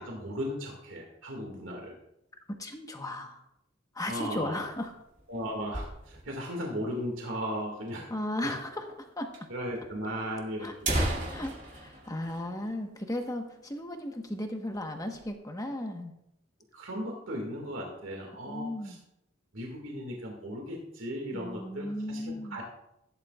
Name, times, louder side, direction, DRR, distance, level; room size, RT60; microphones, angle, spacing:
voice 1, 0.0-2.0 4.1-4.7 5.3-8.1 8.4-8.5 9.5-11.0 16.7-19.0 19.5-22.6, equal, 85° right, 0 dB, 2.1 m, -36 dB
voice 2, 2.6-3.4 3.9-4.9 8.1-8.9 9.2-9.3 10.6-16.1 18.5-19.0 21.3-22.6, left 1 dB, 20° left, 4 dB, 1.2 m, -36 dB
sound 1, 4.7-6.5 6.8-6.9 7.1-7.2 7.9-8.0 8.9-9.0 9.3-9.4 10.2-10.3 10.6-13.2 13.5-13.7 14.1-14.3 14.8-15.3, right 1 dB, 40° right, 2.2 m, -35 dB
15.5 x 10.5 x 2.4 m, 0.84 s
head